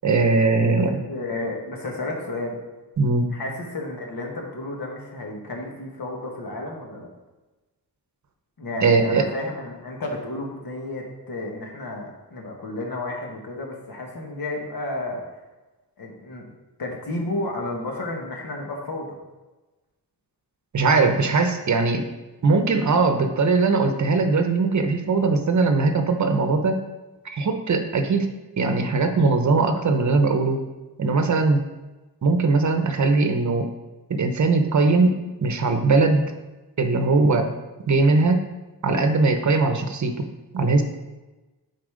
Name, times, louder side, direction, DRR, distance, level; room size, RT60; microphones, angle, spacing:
voice 1, 0.0-1.0 3.0-3.3 8.8-9.3 20.7-22.1 22.4-26.9 27.2-30.6 31.0-31.6 32.2-33.7 34.1-36.2 36.8-37.5 37.9-38.5 38.8-40.3 40.5-40.8, right 3 dB, 45° right, 7 dB, 0.8 m, -20 dB
voice 2, 0.6-2.6 3.3-7.1 8.6-15.2 16.0-16.5 16.8-19.2, left 2 dB, 60° left, 0 dB, 1.7 m, -32 dB
7.9 x 4.2 x 5.0 m, 1.1 s
cardioid pair, 95°, 39 cm